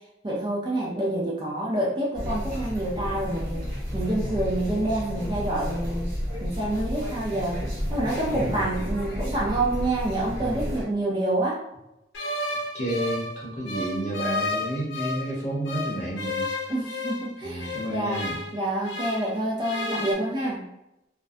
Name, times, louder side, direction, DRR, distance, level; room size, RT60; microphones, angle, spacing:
voice 1, 0.2-3.6 3.9-6.1 6.4-7.6 7.9-11.6 16.7-20.6, right 1 dB, 25° right, -4 dB, 0.4 m, -27 dB
sound 1, 2.1-10.8, equal, 50° right, 1.1 m, -32 dB
voice 2, 8.3-8.8 12.7-16.5 17.4-18.4, right 1 dB, 40° left, -5 dB, 0.8 m, -31 dB
sound 2, 12.1-15.3 15.7-19.3 19.6-20.1, left 2 dB, 80° left, 0.5 m, -32 dB
2.4 x 2.1 x 2.5 m, 0.88 s
head